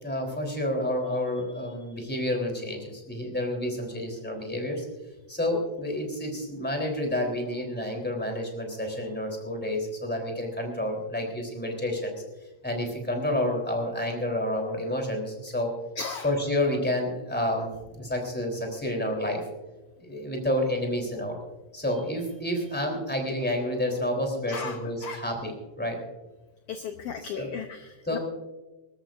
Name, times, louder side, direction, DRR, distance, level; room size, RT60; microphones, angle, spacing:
voice 1, 0.0-4.9 5.3-15.7 16.2-19.4 20.0-21.4 21.7-26.0 27.4-27.5 28.1-28.2, left 1 dB, 5° left, 2 dB, 3.2 m, -29 dB
voice 2, 16.0-16.3 24.5-25.2 26.7-28.2, left 6 dB, 65° left, 5 dB, 1.7 m, -36 dB
25.5 x 13.5 x 2.6 m, 1.1 s
omnidirectional pair, 3.5 m